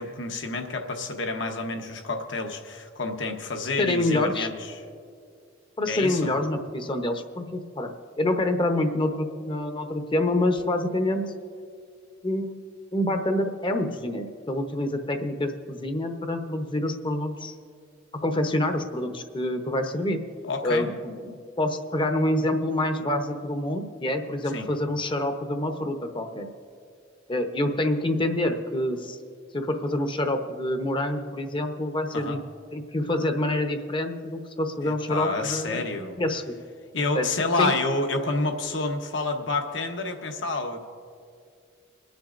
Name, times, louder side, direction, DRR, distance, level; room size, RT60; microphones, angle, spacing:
voice 1, 0.0-4.8 5.9-6.3 20.4-20.9 24.5-24.7 32.1-32.4 34.8-36.2 36.9-40.8, left 3 dB, 65° left, 4 dB, 1.1 m, -29 dB
voice 2, 3.8-4.5 5.8-11.2 12.2-12.6 12.9-17.5 18.1-20.2 20.6-26.5 27.3-29.2 29.5-32.4 32.7-35.8 36.2-36.5 37.1-37.3 37.6-37.7, left 1 dB, 25° left, 6 dB, 0.8 m, -27 dB
30.0 x 10.5 x 2.6 m, 2.3 s
head